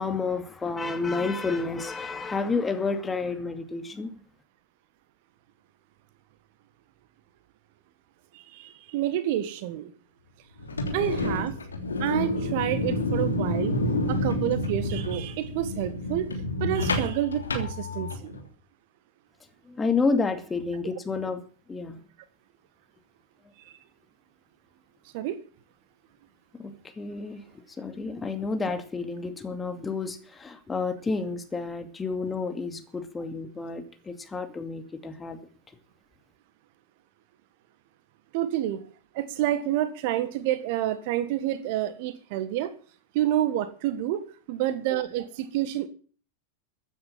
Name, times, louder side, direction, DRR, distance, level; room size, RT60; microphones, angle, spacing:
voice 1, 0.0-4.1 19.7-21.4 21.7-22.0 26.5-27.4 27.8-35.4, left 4 dB, 15° left, 8 dB, 2.3 m, -30 dB
voice 2, 8.3-9.9 10.9-11.6 12.0-13.8 14.1-18.4 23.7-23.8 25.1-25.4 38.3-38.8 39.1-42.7 43.1-45.9, right 12 dB, 50° right, 13 dB, 1.5 m, -29 dB
sound 1, 10.6-18.4, left 1 dB, 75° left, 3.1 m, -29 dB
15.0 x 9.7 x 7.3 m, 0.41 s
figure-of-eight pair, 90°, 0 cm